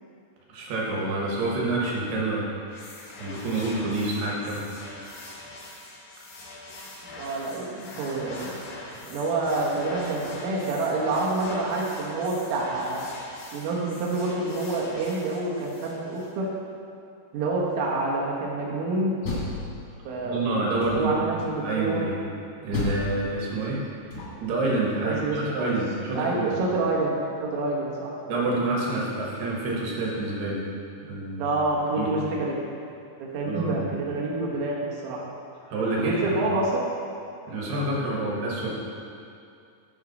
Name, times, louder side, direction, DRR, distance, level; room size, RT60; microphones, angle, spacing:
voice 1, 0.5-2.5 3.2-4.6 4.9-5.2 20.3-21.1 21.6-22.1 22.6-23.8 24.4-26.6 28.3-30.6 31.0-31.5 32.0-32.1 33.5-33.8 35.7-36.4 37.5-38.7, right 2 dB, 70° right, -3 dB, 2.8 m, -28 dB
sound 1, 2.7-16.3, left 2 dB, 85° left, 4.5 m, -43 dB
voice 2, 7.0-8.6 9.1-13.0 13.5-16.5 17.3-19.1 20.1-22.1 25.0-25.7 26.2-28.5 31.4-32.6 33.2-35.2 36.0-36.8, right 2 dB, 85° right, -3 dB, 3.8 m, -27 dB
Door, 19.0-20.2 20.8-21.4 22.7-24.6, left 2 dB, 65° left, 1.6 m, -33 dB
13.0 x 5.0 x 4.0 m, 2.4 s
omnidirectional pair, 5.5 m